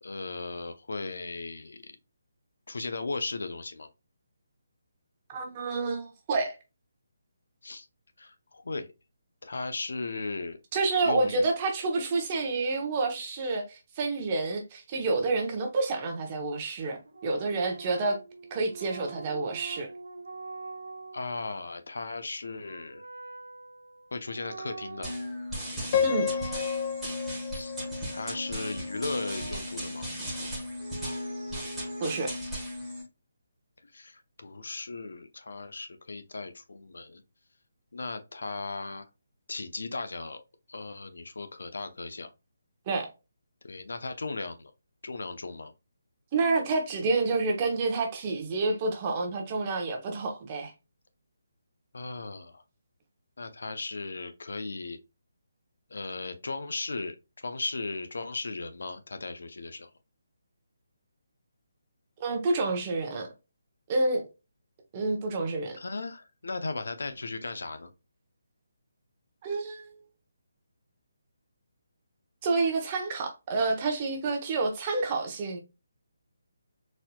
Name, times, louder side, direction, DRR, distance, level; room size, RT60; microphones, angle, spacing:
voice 1, 0.0-1.9 2.7-3.9 7.6-7.9 8.2-8.9 9.4-10.6 11.0-11.5 21.1-23.0 24.1-25.1 27.5-27.8 28.1-30.1 33.9-37.2 37.9-39.1 39.5-40.4 40.7-42.3 43.6-44.7 45.0-45.7 51.9-52.6 53.4-55.0 55.9-57.2 57.4-59.9 65.8-67.9, left 3 dB, 75° left, 0.6 m, -36 dB
voice 2, 5.3-6.6 10.7-18.2 18.5-19.9 26.0-26.3 32.0-32.3 42.9-43.1 46.3-50.7 62.2-63.3 63.9-64.2 64.9-65.8 69.4-70.0 72.4-75.6, right 3 dB, 25° right, 0.9 m, -29 dB
sound 1, 17.1-21.3 22.4-25.3 25.6-27.3 27.9-29.7 30.8-32.3, right 3 dB, 80° right, 0.9 m, -45 dB
sound 2, 25.0-33.0, equal, ahead, 1.4 m, -36 dB
Piano, 25.9-28.9, left 8 dB, 30° left, 0.4 m, -31 dB
4.1 x 2.8 x 2.2 m
hypercardioid pair, 165°, 0 cm